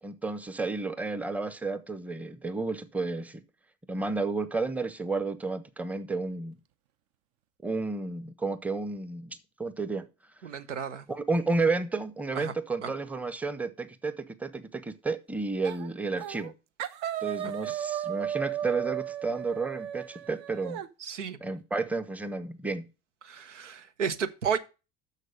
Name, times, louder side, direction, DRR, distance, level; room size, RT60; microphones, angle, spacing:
voice 1, 0.0-3.4 3.9-6.6 7.6-10.1 11.1-16.5 17.2-20.8 21.4-22.8, right 3 dB, 5° right, 0.8 m, -32 dB
voice 2, 10.4-11.1 12.3-12.5 12.8-12.9 17.4-17.5 21.0-21.4 23.2-24.6, right 7 dB, 85° right, 0.8 m, -32 dB
sound 1, 15.6-15.9 16.2-16.5 16.8-20.9, right 10 dB, 55° right, 0.9 m, -34 dB
6.6 x 6.5 x 6.4 m
figure-of-eight pair, 70°, 35 cm